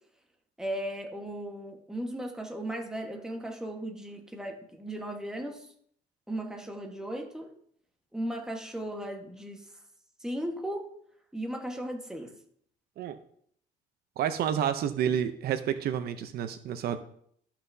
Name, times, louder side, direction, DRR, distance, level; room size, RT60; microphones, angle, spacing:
voice 1, 0.6-5.6 6.3-7.5 8.1-9.6 10.2-10.9 11.3-12.3, right 1 dB, 5° right, 2 dB, 1.4 m, -36 dB
voice 2, 14.2-17.0, right 9 dB, 65° right, 10 dB, 0.7 m, -29 dB
13.5 x 5.8 x 2.7 m, 0.65 s
cardioid pair, 110°, 17 cm